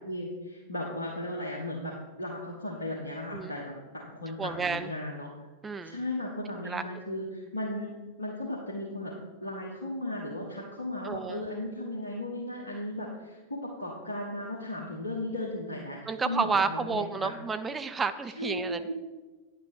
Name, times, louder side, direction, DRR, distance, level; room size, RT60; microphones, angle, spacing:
voice 1, 0.0-5.3 5.8-9.1 9.4-17.3 18.4-18.9, left 1 dB, 75° left, -3 dB, 1.4 m, -36 dB
voice 2, 4.4-4.9 5.6-6.0 6.6-6.8 11.0-11.5 16.1-18.9, right 4 dB, 15° right, 10 dB, 0.6 m, -31 dB
10.0 x 7.4 x 4.8 m, 1.3 s
figure-of-eight pair, 90°, 0 cm